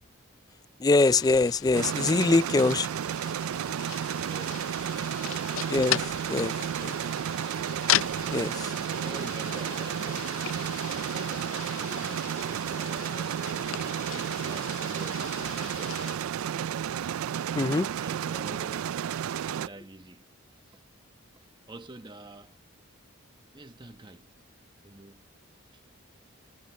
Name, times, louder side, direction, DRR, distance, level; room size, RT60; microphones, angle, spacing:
voice 1, 0.8-2.9 5.7-7.0 8.3-8.7 17.5-17.9, left 3 dB, 20° left, 0.3 m, -24 dB
sound 1, 1.0-16.2, left 11 dB, 70° left, 0.5 m, -37 dB
sound 2, 1.7-19.7, right 9 dB, 80° right, 0.3 m, -32 dB
voice 2, 4.2-5.2 8.9-10.3 11.1-13.4 13.8-16.2 18.0-18.9 19.4-20.3 20.6-20.8 21.4-22.6 23.5-24.3 24.8-25.2 25.7-25.8, right 2 dB, 20° right, 1.0 m, -47 dB
head